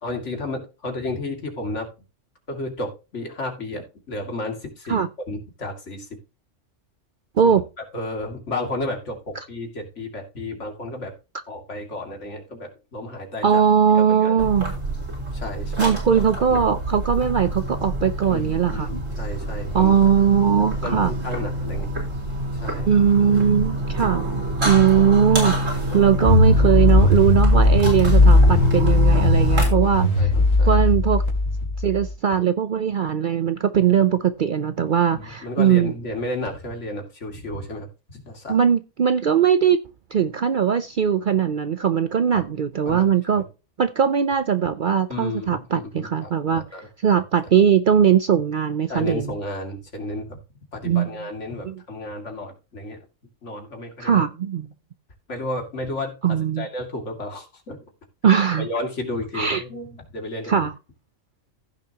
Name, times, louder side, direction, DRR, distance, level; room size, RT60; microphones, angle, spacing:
voice 1, 0.0-1.9 2.5-6.1 7.4-7.5 7.9-11.1 11.5-13.6 13.9-14.4 15.3-15.9 16.5-16.6 18.3-19.9 20.8-21.9 22.6-22.9 24.7-24.8 25.9-26.1 29.6-30.8 35.1-38.6 42.3-42.4 42.9-43.1 43.4-43.5 45.1-46.9 48.9-50.4 50.7-53.0 53.4-54.2 55.3-57.8 58.6-60.7, left 2 dB, 70° left, 2.7 m, -32 dB
voice 2, 13.4-14.7 15.8-19.0 19.7-21.1 22.9-30.3 30.7-31.2 31.8-35.9 38.5-39.8 40.1-43.4 43.8-46.6 47.0-49.3 50.8-51.1 51.6-51.8 54.0-54.7 56.2-56.7 58.2-58.7 59.3-59.6 60.5-60.7, right 8 dB, 55° right, 0.6 m, -20 dB
sound 1, 14.4-29.7, equal, 80° right, 4.4 m, -26 dB
sound 2, 26.2-32.1, left 2 dB, 85° left, 3.0 m, -17 dB
15.5 x 6.7 x 2.9 m
omnidirectional pair, 1.3 m